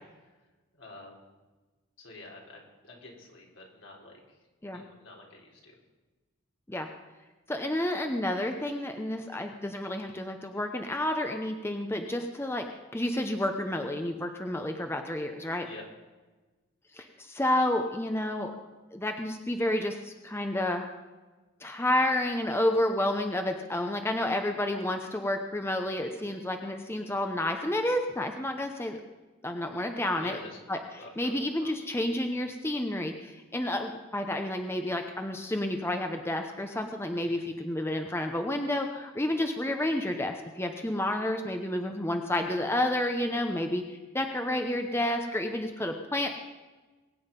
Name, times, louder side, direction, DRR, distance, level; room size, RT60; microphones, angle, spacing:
voice 1, 0.7-1.3 2.0-4.4 4.7-5.7 15.6-15.8 30.2-30.6 31.0-31.8 37.2-37.5, left 2 dB, 70° left, -1 dB, 3.9 m, -48 dB
voice 2, 7.5-12.7 12.9-15.7 16.9-18.5 18.9-20.9 21.6-29.0 29.4-30.4 30.7-30.8 31.2-46.3, left 1 dB, 10° left, 5 dB, 0.8 m, -30 dB
22.5 x 9.4 x 5.3 m, 1.2 s
head